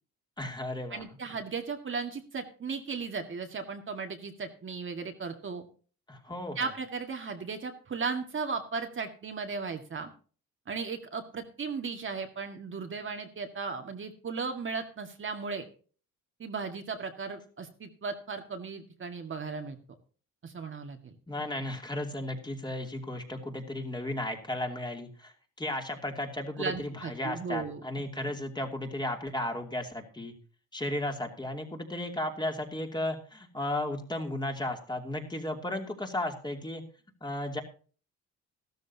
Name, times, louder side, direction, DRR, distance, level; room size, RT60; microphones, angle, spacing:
voice 1, 0.4-1.0 6.1-6.7 21.3-30.3 30.7-36.8 37.2-37.6, left 1 dB, 15° left, 3 dB, 2.8 m, -34 dB
voice 2, 0.9-5.6 6.6-10.1 10.7-15.6 16.4-19.8 20.4-21.2 26.6-27.8, right 5 dB, 40° right, 4 dB, 1.9 m, -36 dB
14.5 x 13.0 x 2.8 m, 0.40 s
cardioid pair, 90°, 30 cm